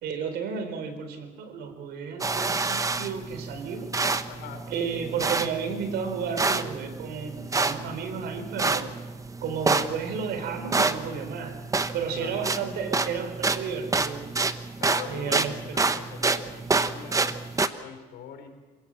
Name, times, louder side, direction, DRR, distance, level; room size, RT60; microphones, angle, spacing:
voice 1, 0.0-3.9 4.7-8.9 9.4-11.6 11.9-14.3 15.1-15.8, right 6 dB, 75° right, 8 dB, 3.9 m, -32 dB
sound 1, 2.2-17.7, right 3 dB, 20° right, 1.1 m, -28 dB
voice 2, 4.3-4.7 12.1-12.4 14.8-17.4 17.6-18.5, left 7 dB, 80° left, 6 dB, 4.3 m, -43 dB
27.0 x 17.0 x 7.5 m, 1.2 s
cardioid pair, 110°, 17 cm